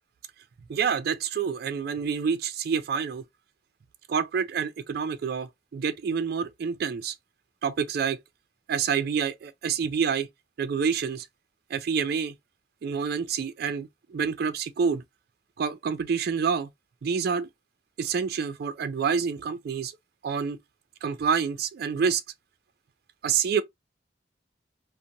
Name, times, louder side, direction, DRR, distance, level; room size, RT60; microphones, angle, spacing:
voice 1, 0.7-3.2 4.1-7.2 7.6-8.2 8.7-10.3 10.6-11.3 11.7-12.3 12.8-15.0 15.6-16.7 17.0-17.5 18.0-19.9 20.2-20.6 21.0-22.2 23.2-23.6, right 6 dB, 60° right, 0.3 m, -27 dB
2.8 x 2.1 x 2.5 m
head